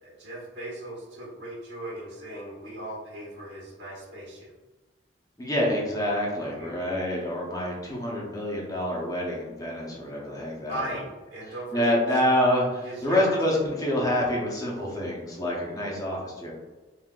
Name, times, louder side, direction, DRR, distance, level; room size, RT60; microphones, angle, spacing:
voice 1, 0.0-4.5 6.6-7.0 10.7-11.0 11.3-12.1 12.8-13.3, right 1 dB, 75° right, -5 dB, 1.4 m, -38 dB
voice 2, 5.4-10.8 11.7-16.5, left 1 dB, 20° left, -3 dB, 0.7 m, -27 dB
3.6 x 2.7 x 2.3 m, 1.2 s
head